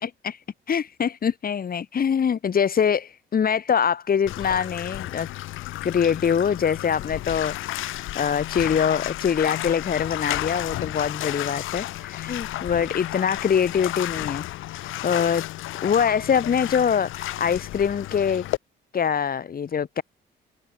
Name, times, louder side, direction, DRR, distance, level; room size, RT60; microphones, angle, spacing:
voice 1, 0.0-5.3 5.8-14.5 14.7-15.4 15.8-18.4 18.9-20.0, left 7 dB, 50° left, 2.8 m, -24 dB
Bathtub (filling or washing), 4.3-18.6, left 16 dB, 90° left, 1.6 m, -32 dB
open air
cardioid pair, 90°, 20 cm